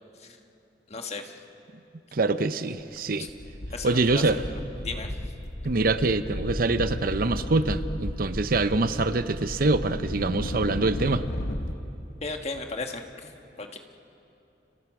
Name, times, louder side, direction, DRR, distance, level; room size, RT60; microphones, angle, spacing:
voice 1, 0.9-1.3 3.2-3.3 3.7-4.2 4.8-5.1 12.2-13.3 13.6-13.8, left 3 dB, 35° left, 5 dB, 1.4 m, -35 dB
voice 2, 2.1-3.3 3.8-4.4 5.6-11.2, right 3 dB, 55° right, 11 dB, 0.7 m, -25 dB
sound 1, 2.8-3.0 3.3-11.7, left 1 dB, 65° left, 1.3 m, -34 dB
29.5 x 28.5 x 4.9 m, 2.7 s
head